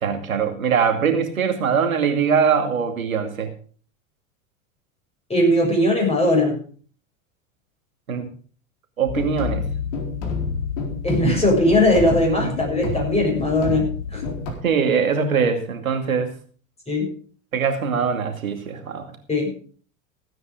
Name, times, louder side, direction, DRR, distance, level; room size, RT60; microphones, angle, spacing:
voice 1, 0.0-3.5 8.1-8.3 9.0-9.6 12.4-12.5 14.6-16.3 17.5-19.1, right 6 dB, 85° right, 6 dB, 2.5 m, -22 dB
voice 2, 5.3-6.6 11.0-14.2 16.9-17.1 19.3-19.5, left 1 dB, 15° left, 0 dB, 7.1 m, -19 dB
sound 1, 9.1-14.5, left 5 dB, 60° left, 4.3 m, -28 dB
16.0 x 9.4 x 5.1 m, 0.43 s
hypercardioid pair, 90°, 40 cm